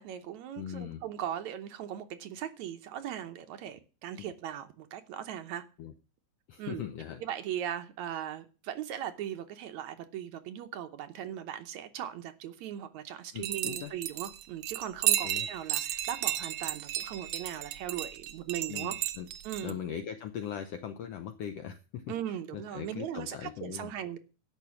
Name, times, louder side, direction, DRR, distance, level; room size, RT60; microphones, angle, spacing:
voice 1, 0.0-5.6 6.6-6.8 7.2-19.0 19.4-19.8 22.1-24.2, right 10 dB, 70° right, 8 dB, 2.0 m, -39 dB
voice 2, 0.6-1.0 4.2-4.3 5.8-5.9 6.5-7.2 13.3-13.9 15.2-15.5 18.7-19.3 19.6-22.1 22.5-23.9, left 9 dB, 75° left, 8 dB, 1.5 m, -40 dB
sound 1, 13.4-19.7, right 13 dB, 85° right, 1.3 m, -33 dB
12.5 x 5.9 x 7.0 m, 0.34 s
omnidirectional pair, 3.7 m